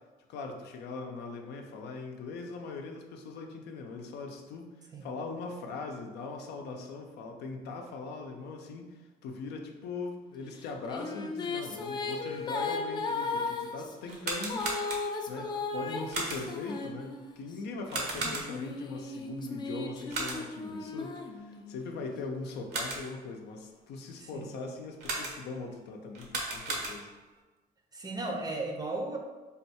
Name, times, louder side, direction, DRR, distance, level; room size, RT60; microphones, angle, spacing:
voice 1, 0.3-14.7 15.3-27.1, left 3 dB, 80° left, 2 dB, 0.6 m, -40 dB
Female singing, 10.6-17.5 18.2-21.9, left 3 dB, 25° left, 0.4 m, -36 dB
sound 1, 14.0-15.3 16.1-16.7 17.9-18.8 20.1-20.7 22.5-23.2 25.0-25.6 26.1-27.3, right 2 dB, 75° right, 0.9 m, -36 dB
voice 2, 27.9-29.2, right 2 dB, 25° right, 2 dB, 0.6 m, -35 dB
3.5 x 2.3 x 4.2 m, 1.2 s
cardioid pair, 110°, 17 cm